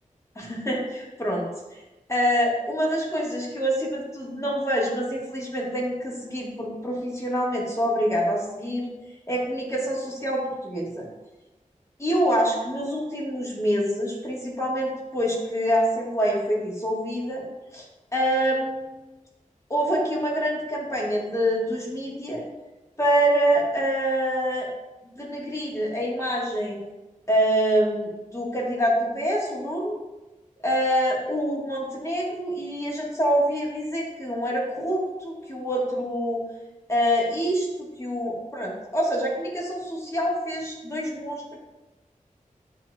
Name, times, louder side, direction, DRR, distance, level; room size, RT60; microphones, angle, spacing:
voice 1, 0.3-1.4 1.7-1.8 2.1-8.9 9.3-11.1 12.0-17.4 17.7-17.8 18.1-18.9 19.7-22.4 23.0-24.7 25.2-26.8 27.3-30.0 30.6-36.4 36.9-37.7 38.0-41.6, equal, 20° left, -4 dB, 1.4 m, -26 dB
8.1 x 2.8 x 2.3 m, 1.1 s
wide cardioid pair, 70°, 14 cm